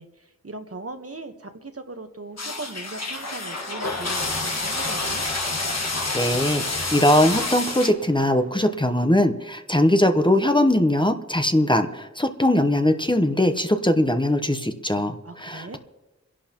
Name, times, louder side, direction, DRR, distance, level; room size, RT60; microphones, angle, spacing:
voice 1, 0.0-5.2 15.2-15.8, right 3 dB, 55° right, 6 dB, 1.2 m, -39 dB
sound 1, 2.4-7.9, left 3 dB, 65° left, 1.4 m, -28 dB
sound 2, 2.4-8.9 9.4-9.5, equal, 30° left, 2.1 m, -40 dB
voice 2, 6.1-15.8, left 1 dB, 15° left, 7 dB, 0.9 m, -21 dB
27.5 x 11.0 x 3.0 m, 1.1 s
wide cardioid pair, 45°, 29 cm